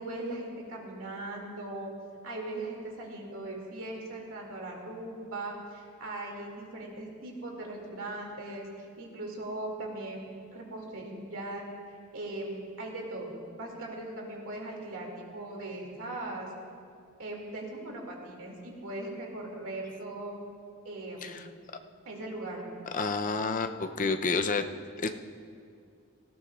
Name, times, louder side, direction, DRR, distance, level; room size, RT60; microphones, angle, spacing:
voice 1, 0.0-1.9 2.2-8.7 9.0-11.6 12.1-13.3 13.6-16.5 17.2-20.4 20.8-21.4 22.0-22.7, right 2 dB, 65° right, -1 dB, 2.4 m, -39 dB
voice 2, 22.9-24.7 25.0-25.1, left 4 dB, 35° left, 7 dB, 0.5 m, -29 dB
18.5 x 16.5 x 2.4 m, 2.3 s
head